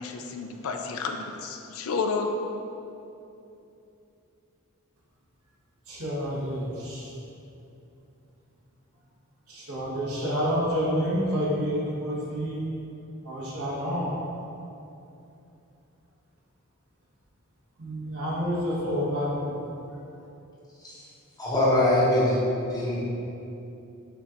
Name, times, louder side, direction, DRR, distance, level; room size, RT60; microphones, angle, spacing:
voice 1, 0.0-2.3, left 5 dB, 70° left, 4 dB, 0.3 m, -31 dB
voice 2, 5.9-7.1 9.5-12.7 13.2-14.1 17.8-19.5, equal, 75° right, -7 dB, 1.1 m, -28 dB
voice 3, 21.4-22.4 22.7-23.0, left 1 dB, 15° left, -7 dB, 0.7 m, -23 dB
5.8 x 2.4 x 2.8 m, 2.8 s
head